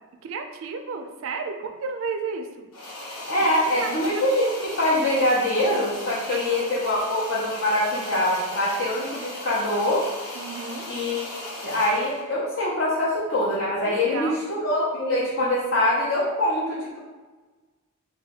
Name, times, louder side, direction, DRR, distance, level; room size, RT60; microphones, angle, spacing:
voice 1, 0.2-2.7 3.5-4.2 6.3-6.6 10.3-10.9 13.8-14.4, right 5 dB, 65° right, 6 dB, 0.3 m, -33 dB
sound 1, 2.7-12.3, left 1 dB, 90° left, 0.9 m, -37 dB
voice 2, 3.3-10.1 10.9-17.0, left 1 dB, 60° left, -6 dB, 0.6 m, -24 dB
2.7 x 2.2 x 4.0 m, 1.3 s
head